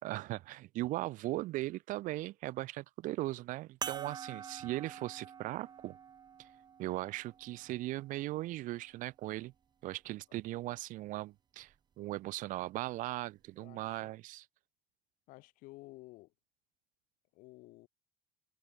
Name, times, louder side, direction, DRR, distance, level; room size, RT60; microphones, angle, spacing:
voice 1, 0.0-6.0 6.4-6.5 6.8-9.5 9.8-14.5, right 17 dB, 65° right, 3.5 m, -38 dB
sound 1, 3.8-8.6 9.4-9.5 11.6-11.8, right 7 dB, 30° right, 1.1 m, -47 dB
voice 2, 13.6-14.1 15.3-16.3 17.3-17.9, left 21 dB, 75° left, 4.9 m, -53 dB
cardioid pair, 130°, 14 cm